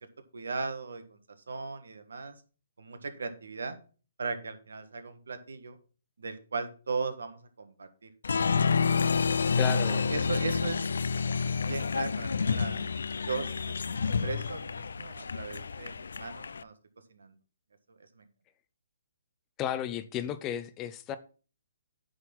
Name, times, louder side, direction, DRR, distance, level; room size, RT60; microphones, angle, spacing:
voice 1, 0.3-1.2 1.5-2.3 2.8-3.8 4.2-5.8 6.2-8.1 8.9-9.6 10.1-10.9 11.5-12.9 13.3-13.9 14.2-16.7 17.1-17.3 18.2-18.3, right 4 dB, 80° right, 10 dB, 1.5 m, -37 dB
Applause, 8.2-16.6, left 5 dB, 80° left, 0.4 m, -29 dB
voice 2, 9.6-10.1 19.6-21.2, left 10 dB, 20° left, 12 dB, 0.6 m, -33 dB
9.6 x 4.2 x 5.9 m, 0.37 s
hypercardioid pair, 145°, 0 cm